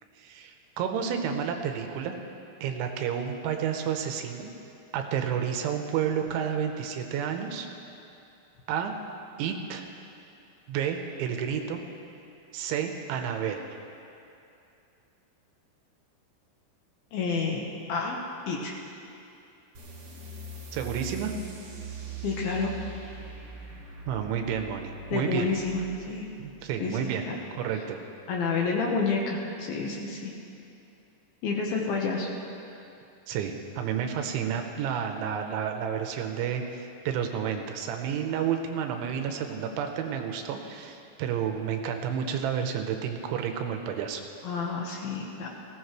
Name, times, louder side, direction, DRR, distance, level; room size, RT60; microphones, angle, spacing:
voice 1, 0.2-2.2 2.6-4.5 4.9-7.7 8.7-8.9 9.4-9.8 10.7-11.8 12.5-13.7 20.7-21.3 24.1-25.5 26.4-28.0 33.3-44.2, right 8 dB, 85° right, 5 dB, 3.1 m, -30 dB
voice 2, 17.1-17.6 17.9-18.2 18.5-18.7 22.2-22.7 25.1-26.3 26.8-27.0 27.2-27.4 28.3-30.3 31.4-32.3 44.4-45.5, left 4 dB, 70° left, -1 dB, 2.4 m, -29 dB
sound 1, 19.7-26.9, right 2 dB, 70° right, 1.3 m, -42 dB
19.5 x 16.0 x 3.2 m, 2.7 s
omnidirectional pair, 5.5 m